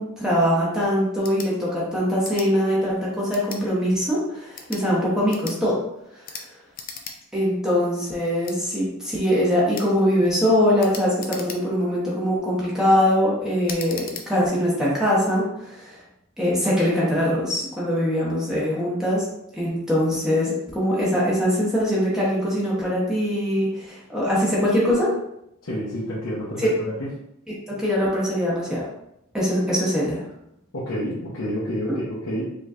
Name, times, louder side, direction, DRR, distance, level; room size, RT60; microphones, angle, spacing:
voice 1, 0.0-5.8 7.3-16.0 16.4-19.3 19.5-25.1 26.6-26.7 27.8-28.8 29.3-30.2, equal, 5° right, -7 dB, 1.0 m, -22 dB
sound 1, 1.2-1.5 2.2-2.5 3.3-3.6 4.4-4.8 5.3-5.6 6.2-6.5 6.7-7.2 7.5-7.6 8.4-8.6 9.7-9.9 10.8-11.9 12.4-12.7 13.6-14.3, left 5 dB, 40° left, 0.5 m, -37 dB
voice 2, 25.6-27.1 30.7-32.4, equal, 85° left, -8 dB, 0.9 m, -29 dB
5.0 x 3.0 x 2.5 m, 0.79 s
head